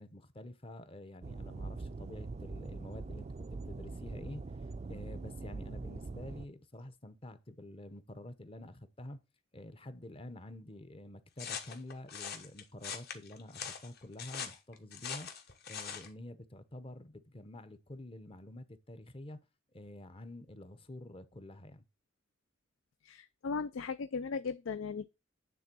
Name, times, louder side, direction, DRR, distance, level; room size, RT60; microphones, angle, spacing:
voice 1, 0.0-4.4 4.8-9.2 9.5-15.3 15.7-19.4 19.7-21.8, left 1 dB, 30° left, 0.7 m, -48 dB
sound 1, 1.2-6.5, right 3 dB, 35° right, 0.4 m, -43 dB
sound 2, 11.4-16.1, left 7 dB, 55° left, 1.2 m, -42 dB
voice 2, 23.0-25.1, left 5 dB, 80° left, 0.4 m, -37 dB
9.3 x 3.7 x 6.0 m
head